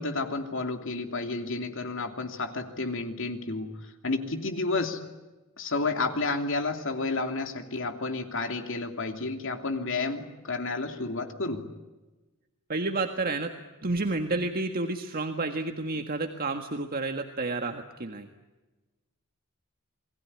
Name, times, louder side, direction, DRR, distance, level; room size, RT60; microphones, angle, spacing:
voice 1, 0.0-3.8 4.0-5.0 5.6-11.6, left 3 dB, 65° left, 6 dB, 3.0 m, -31 dB
voice 2, 12.7-13.5 13.8-18.3, right 3 dB, 45° right, 5 dB, 1.7 m, -30 dB
28.0 x 21.0 x 10.0 m, 1.2 s
head